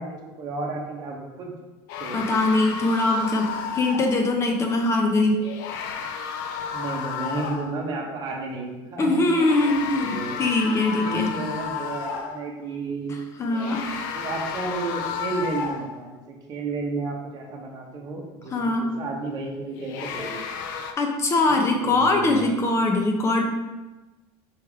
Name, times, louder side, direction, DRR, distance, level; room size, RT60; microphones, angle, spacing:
voice 1, 0.0-1.5 2.0-2.3 6.7-9.2 9.9-10.4 11.0-13.1 14.1-20.4 21.4-21.5 21.8-22.5, right 3 dB, 40° right, -1 dB, 0.9 m, -32 dB
sound 1, 1.9-4.3 5.4-7.8 9.2-12.5 13.5-16.1 19.7-20.9, left 6 dB, 90° left, 0.4 m, -32 dB
voice 2, 2.1-5.4 9.0-11.3 13.4-13.8 18.5-18.9 21.0-23.4, left 2 dB, 25° left, 3 dB, 0.6 m, -22 dB
3.4 x 3.1 x 4.7 m, 1.1 s
cardioid pair, 130°, 10 cm